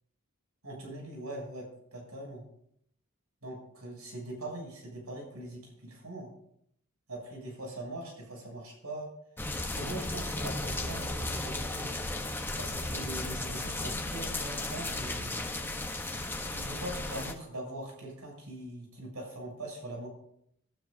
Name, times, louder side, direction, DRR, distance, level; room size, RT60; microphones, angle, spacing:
voice 1, 0.6-2.4 3.4-6.3 7.1-9.1 9.7-11.9 12.6-15.4 16.5-20.1, right 1 dB, 85° right, 0 dB, 7.6 m, -42 dB
sound 1, 9.4-17.3, left 2 dB, 10° left, 1.0 m, -35 dB
26.5 x 12.5 x 2.7 m, 0.72 s
head